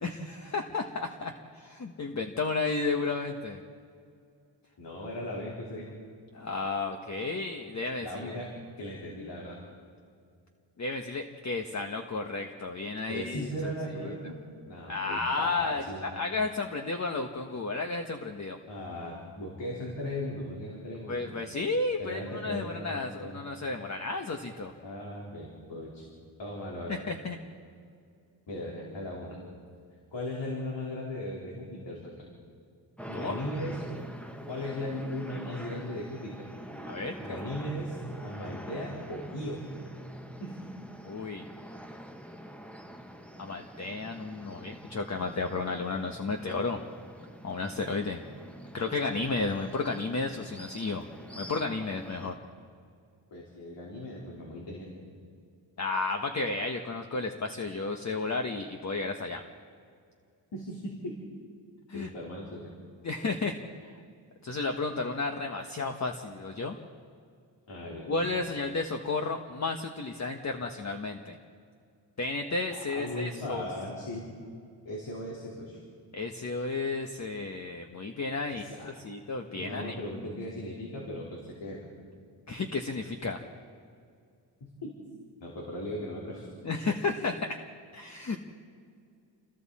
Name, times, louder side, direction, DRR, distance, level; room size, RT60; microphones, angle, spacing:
voice 1, 0.0-3.6 6.3-8.4 10.8-13.7 14.0-14.1 14.9-18.6 21.1-24.7 26.9-27.4 33.1-33.4 36.8-37.4 41.0-41.4 43.4-46.8 47.4-48.2 48.7-51.1 51.4-52.3 55.8-59.4 61.9-62.1 63.0-63.9 64.4-66.8 68.1-71.4 72.2-73.7 76.1-79.9 82.5-83.4 86.6-87.6 87.9-88.4, left 3 dB, 35° left, 4 dB, 1.2 m, -33 dB
voice 2, 4.8-5.9 8.0-8.5 8.8-9.6 13.1-14.4 14.6-16.0 18.7-21.2 22.0-23.4 24.8-26.1 26.4-27.0 28.5-29.4 30.1-32.2 33.1-33.8 34.4-36.3 37.2-39.6 40.4-40.5 53.3-54.9 60.5-61.1 61.9-62.7 67.7-68.3 72.8-74.3 74.8-75.8 78.5-79.0 79.5-81.8 84.6-84.9 85.4-86.5, left 1 dB, 70° left, -4 dB, 4.3 m, -37 dB
sound 1, 33.0-52.4, equal, 5° left, 1.3 m, -45 dB
29.0 x 21.5 x 4.3 m, 2.3 s
cardioid pair, 95°, 45 cm